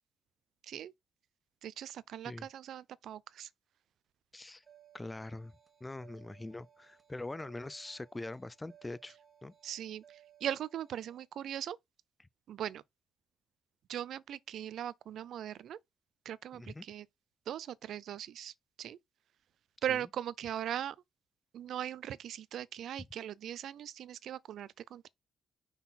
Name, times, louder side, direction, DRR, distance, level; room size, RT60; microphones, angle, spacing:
voice 1, 1.6-3.5 9.6-11.8 12.5-12.8 13.9-15.8 16.2-17.1 17.5-19.0 19.8-21.0 21.5-25.1, right 10 dB, 70° right, 0.5 m, -39 dB
voice 2, 4.3-4.6 4.9-5.5 5.8-9.5 16.5-16.8 19.9-20.0, left 2 dB, 15° left, 0.4 m, -43 dB
sound 1, 4.6-11.3, right 9 dB, 35° right, 1.3 m, -62 dB
5.7 x 3.9 x 4.2 m
cardioid pair, 90°, 0 cm